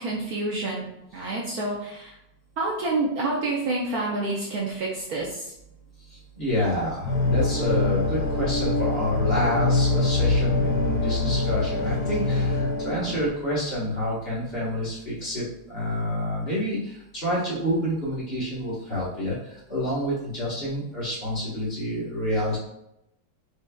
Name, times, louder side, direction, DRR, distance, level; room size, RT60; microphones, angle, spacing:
voice 1, 0.0-2.2 2.6-5.5 12.3-12.4, right 2 dB, 65° right, -3 dB, 0.9 m, -28 dB
voice 2, 6.1-22.6, equal, 40° left, -8 dB, 1.1 m, -28 dB
sound 1, 7.0-13.3, left 2 dB, 90° left, 1.5 m, -24 dB
4.8 x 2.7 x 2.2 m, 0.83 s
omnidirectional pair, 2.0 m